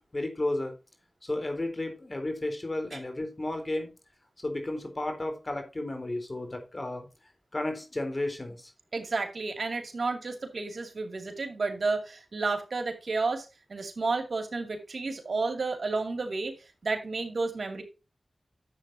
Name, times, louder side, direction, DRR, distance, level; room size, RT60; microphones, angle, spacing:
voice 1, 0.1-0.7 1.2-3.9 4.4-7.1 7.5-8.7, left 1 dB, 40° left, 6 dB, 3.8 m, -33 dB
voice 2, 8.9-16.5 16.8-17.8, right 3 dB, 75° right, 6 dB, 2.4 m, -31 dB
11.5 x 7.7 x 2.7 m, 0.28 s
cardioid pair, 45°, 0 cm